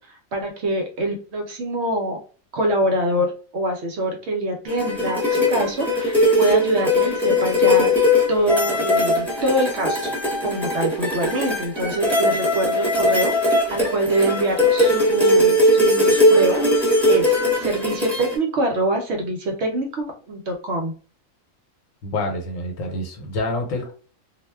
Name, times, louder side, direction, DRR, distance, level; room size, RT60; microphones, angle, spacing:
voice 1, 0.1-2.2 2.5-10.2 10.4-20.9, right 1 dB, 65° right, 3 dB, 0.8 m, -25 dB
sound 1, 4.7-18.4, left 1 dB, ahead, 0.8 m, -19 dB
voice 2, 22.0-23.9, left 2 dB, 75° left, 2 dB, 1.1 m, -27 dB
2.3 x 2.1 x 3.3 m, 0.40 s
omnidirectional pair, 1.4 m